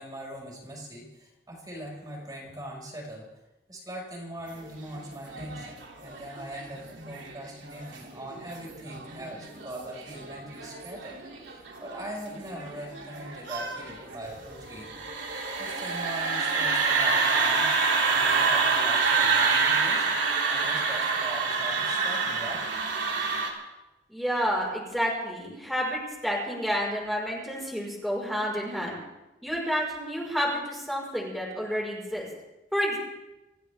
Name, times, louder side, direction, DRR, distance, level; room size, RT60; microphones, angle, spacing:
voice 1, 0.0-3.3 3.7-11.2 11.4-14.9 15.6-17.7 18.1-20.2 20.5-22.6, equal, 20° right, -1 dB, 5.3 m, -41 dB
sound 1, 4.6-23.5, right 4 dB, 80° right, 2.9 m, -28 dB
voice 2, 24.1-29.0 29.4-32.3 32.7-33.0, equal, ahead, -5 dB, 4.9 m, -29 dB
27.5 x 14.5 x 3.5 m, 0.99 s
head